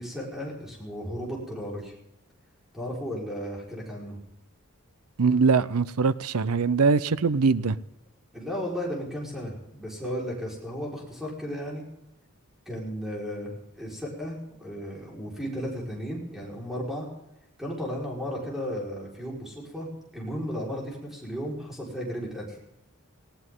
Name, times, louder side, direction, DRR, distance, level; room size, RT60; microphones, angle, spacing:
voice 1, 0.0-1.9 2.7-4.2 8.3-11.8 12.7-17.1 17.6-19.9 20.1-22.6, equal, ahead, 4.7 m, -34 dB
voice 2, 5.2-7.8, right 4 dB, 80° right, 0.7 m, -22 dB
19.0 x 17.5 x 3.8 m
head